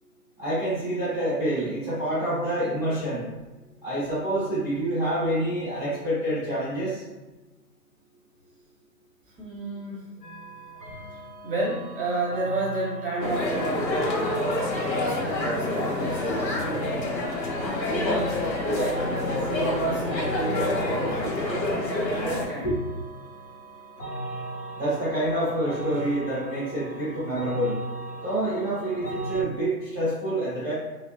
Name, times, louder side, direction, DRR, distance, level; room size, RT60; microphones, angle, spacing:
voice 1, 0.4-3.3 3.8-7.0 22.6-22.7 24.8-27.8 28.2-30.7, right 1 dB, 15° left, -17 dB, 0.5 m, -27 dB
voice 2, 9.4-10.1 11.4-17.2 17.5-18.4 18.6-21.7 22.1-22.8, right 2 dB, 35° right, -5 dB, 0.7 m, -32 dB
sound 1, 10.2-29.4, right 2 dB, 65° left, 1.1 m, -38 dB
sound 2, 13.2-22.5, left 2 dB, 85° left, 0.8 m, -27 dB
2.7 x 2.2 x 2.3 m, 1.1 s
hypercardioid pair, 150°, 50 cm